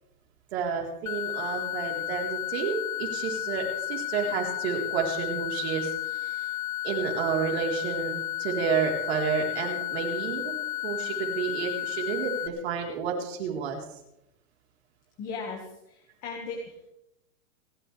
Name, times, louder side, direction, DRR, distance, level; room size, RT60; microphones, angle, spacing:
voice 1, 0.5-6.4 6.8-10.6 10.8-13.8, right 6 dB, 45° right, 1 dB, 3.9 m, -30 dB
sound 1, 1.1-12.5, left 14 dB, 65° left, 1.3 m, -33 dB
voice 2, 15.2-16.9, left 4 dB, 15° left, 0 dB, 1.7 m, -37 dB
29.5 x 12.5 x 3.4 m, 0.84 s
supercardioid pair, 180°, 44 cm